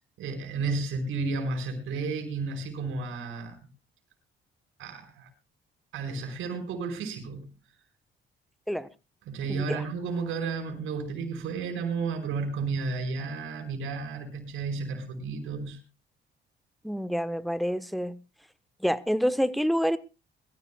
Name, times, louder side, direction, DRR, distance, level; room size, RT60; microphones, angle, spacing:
voice 1, 0.2-3.7 4.8-5.3 5.9-7.6 9.3-15.8, right 4 dB, 85° right, 4.7 m, -32 dB
voice 2, 9.5-9.8 16.8-18.1 18.8-20.0, equal, ahead, 1.0 m, -27 dB
22.0 x 15.0 x 2.3 m
cardioid pair, 90°, 20 cm